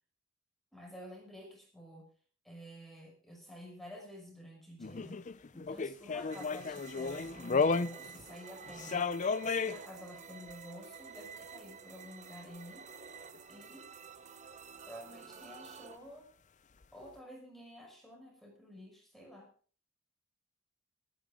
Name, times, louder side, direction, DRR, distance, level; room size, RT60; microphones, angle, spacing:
voice 1, 0.7-2.1 2.4-5.3 5.5-9.1 9.4-12.9 13.5-13.9 14.9-16.3 16.9-19.5, equal, ahead, 0 dB, 5.7 m, -50 dB
sound 1, 4.8-8.2 8.7-9.8 13.3-13.4, left 4 dB, 40° left, 0.6 m, -33 dB
sound 2, 6.3-16.0, right 6 dB, 35° right, 1.0 m, -51 dB
24.5 x 9.8 x 3.8 m, 0.41 s
head